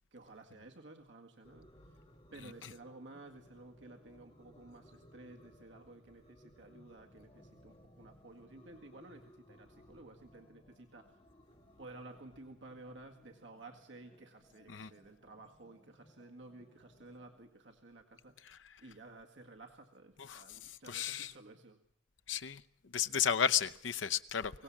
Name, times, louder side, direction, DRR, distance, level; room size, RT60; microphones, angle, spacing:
voice 1, 0.1-2.0 2.3-11.2 11.8-21.8 24.5-24.6, right 2 dB, 80° right, 1.9 m, -54 dB
sound 1, 1.4-17.4, equal, 30° left, 3.8 m, -62 dB
voice 2, 20.2-21.3 22.3-22.6 22.9-24.5, left 8 dB, 90° left, 0.8 m, -33 dB
23.5 x 17.5 x 7.2 m
head